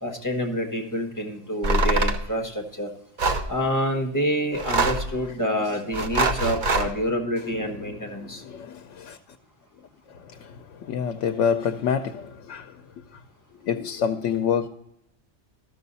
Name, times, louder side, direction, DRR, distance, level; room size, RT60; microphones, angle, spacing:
voice 1, 0.0-2.9 3.5-8.4, equal, 15° left, 1.3 m, -27 dB
sound 1, 1.6-2.2 3.2-3.5 4.5-5.1 5.9-6.9, right 2 dB, 45° right, 0.9 m, -23 dB
voice 2, 6.5-6.9 7.4-9.2 9.7-13.2 13.6-14.7, left 7 dB, 85° left, 0.9 m, -29 dB
13.0 x 6.6 x 4.0 m
omnidirectional pair, 1.2 m